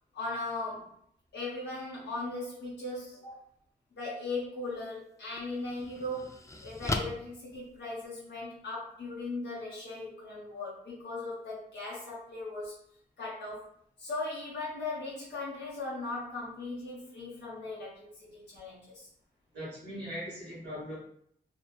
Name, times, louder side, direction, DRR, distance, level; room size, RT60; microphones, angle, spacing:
voice 1, 0.1-0.9 1.3-3.3 3.9-6.3 6.6-12.7 13.2-13.7 14.0-19.1, left 2 dB, 85° left, -6 dB, 0.8 m, -38 dB
sound 1, 4.6-4.8 5.4-8.4, left 2 dB, 15° left, 0.4 m, -38 dB
voice 2, 19.5-21.0, equal, 80° right, -9 dB, 1.1 m, -40 dB
2.8 x 2.1 x 2.3 m, 0.67 s
cardioid pair, 40°, 18 cm